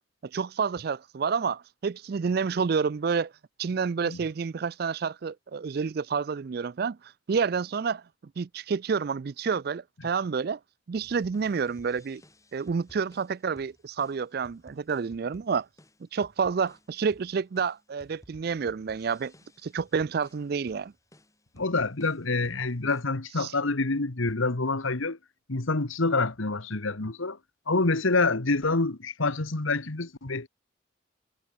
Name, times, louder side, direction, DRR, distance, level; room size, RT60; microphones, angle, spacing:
voice 1, 0.3-3.3 3.6-8.0 8.4-10.6 10.9-12.2 12.5-15.7 16.1-19.3 19.6-20.9 23.4-23.5, right 5 dB, 50° right, 0.4 m, -29 dB
sound 1, 10.9-23.0, left 1 dB, 15° left, 5.3 m, -57 dB
voice 2, 21.6-25.2 25.5-27.4 27.7-30.5, left 3 dB, 80° left, 1.6 m, -27 dB
head